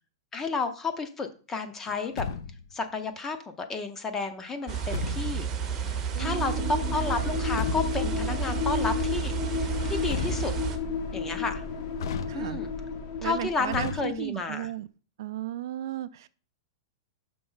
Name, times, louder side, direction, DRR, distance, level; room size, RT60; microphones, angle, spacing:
voice 1, 0.3-2.3 2.7-10.5 11.1-11.6 12.3-12.7 13.2-14.7, left 4 dB, 15° left, 0.6 m, -32 dB
Truck, 1.9-2.8 4.7-5.5 7.2-8.2 9.7-10.8 12.0-12.8 13.7-14.6, left 6 dB, 65° left, 0.5 m, -36 dB
sound 1, 4.7-10.8, right 7 dB, 20° right, 0.7 m, -31 dB
sound 2, 6.1-13.9, left 6 dB, 45° left, 1.0 m, -33 dB
voice 2, 6.2-6.8 12.3-12.6 13.2-14.9 15.2-16.3, right 12 dB, 60° right, 0.4 m, -34 dB
5.9 x 4.2 x 5.5 m
supercardioid pair, 165°, 2 cm